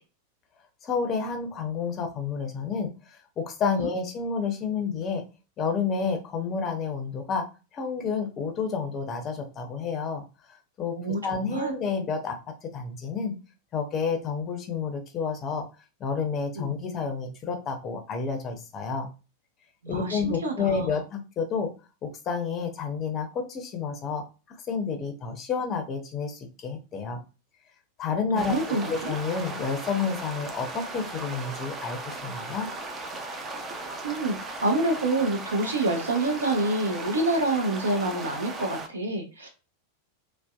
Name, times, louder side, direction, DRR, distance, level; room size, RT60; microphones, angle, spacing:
voice 1, 0.8-5.2 5.6-7.4 7.7-10.2 10.8-10.9 11.2-12.4 12.6-13.3 13.7-15.6 16.0-19.1 19.9-21.7 22.0-24.2 24.6-27.2 28.0-32.7, left 5 dB, 30° left, 4 dB, 0.5 m, -30 dB
voice 2, 11.0-11.7 16.6-16.7 19.8-21.0 28.3-29.1 34.0-34.4 34.6-39.5, right 2 dB, 75° right, 4 dB, 0.6 m, -27 dB
sound 1, 28.4-38.9, right 2 dB, 25° right, 0.4 m, -37 dB
2.5 x 2.1 x 2.3 m, 0.32 s
figure-of-eight pair, 90°, 0 cm